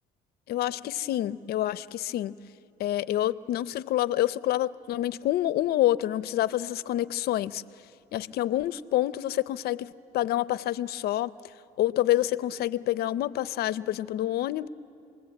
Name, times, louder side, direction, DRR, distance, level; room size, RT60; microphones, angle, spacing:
voice 1, 0.5-2.3 2.8-7.6 8.1-11.3 11.8-14.7, left 14 dB, 70° left, 16 dB, 0.6 m, -27 dB
28.5 x 20.5 x 8.4 m, 2.6 s
cardioid pair, 110°, 17 cm